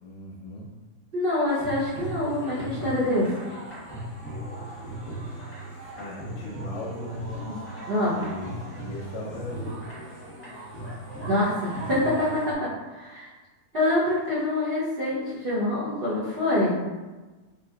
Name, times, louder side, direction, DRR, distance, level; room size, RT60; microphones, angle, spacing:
voice 1, 0.0-0.6 6.0-7.3 8.1-9.9, left 1 dB, 50° left, -2 dB, 0.8 m, -38 dB
voice 2, 1.1-3.3 7.5-7.6 7.9-8.3 11.2-13.3 13.7-16.8, left 1 dB, 50° right, -8 dB, 0.7 m, -25 dB
sound 1, 1.5-12.5, right 1 dB, 10° left, 1.0 m, -37 dB
4.3 x 2.9 x 2.4 m, 1.2 s
omnidirectional pair, 1.8 m